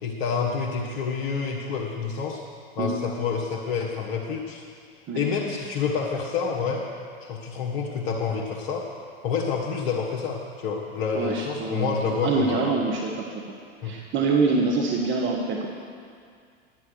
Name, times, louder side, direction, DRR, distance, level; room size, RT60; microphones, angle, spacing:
voice 1, 0.0-2.4 2.8-4.6 5.1-6.8 7.2-8.8 9.2-12.7 13.8-13.9, left 5 dB, 55° left, -4 dB, 1.6 m, -28 dB
voice 2, 11.1-13.4 13.8-15.7, right 4 dB, 40° right, 0 dB, 1.4 m, -25 dB
11.0 x 9.3 x 6.4 m, 2.2 s
hypercardioid pair, 85°, 31 cm